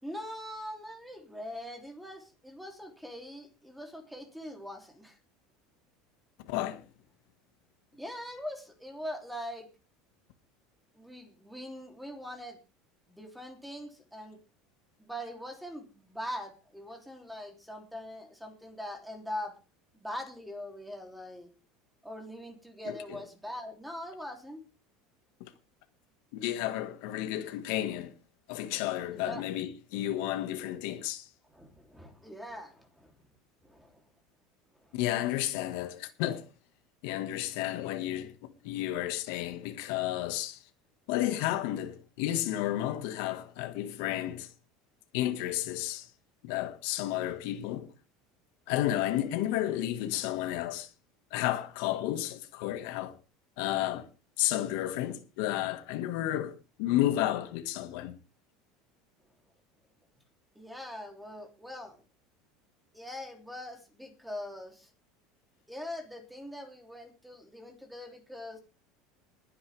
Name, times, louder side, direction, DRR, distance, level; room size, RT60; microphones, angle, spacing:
voice 1, 0.0-5.2 7.9-9.7 10.9-12.6 13.1-14.4 15.0-19.6 19.9-21.5 22.0-24.6 29.1-29.4 31.4-33.1 33.6-34.0 34.8-35.0 60.5-62.0 62.9-64.9 65.7-68.6, left 1 dB, ahead, 3.1 m, -42 dB
voice 2, 6.5-6.8 22.8-23.2 25.4-25.5 26.3-28.1 28.5-31.3 34.9-36.4 37.0-38.3 38.6-40.6 41.1-44.5 45.1-46.1 46.4-47.9 48.7-50.9 51.3-53.2 53.6-54.1 54.4-58.1, left 13 dB, 70° left, 1.7 m, -32 dB
20.5 x 9.6 x 3.5 m
cardioid pair, 150°, 0 cm